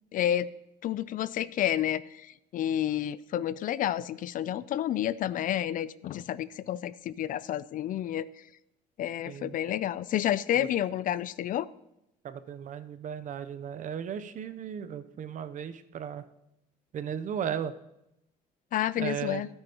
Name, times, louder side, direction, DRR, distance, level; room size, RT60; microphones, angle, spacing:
voice 1, 0.1-0.5 0.8-8.3 9.0-11.7 18.7-19.5, left 11 dB, 55° left, 18 dB, 0.4 m, -30 dB
voice 2, 9.3-9.6 10.5-10.7 12.2-16.3 16.9-17.7 18.9-19.4, right 8 dB, 50° right, 11 dB, 0.7 m, -36 dB
13.0 x 9.0 x 2.9 m, 0.84 s
cardioid pair, 110°, 17 cm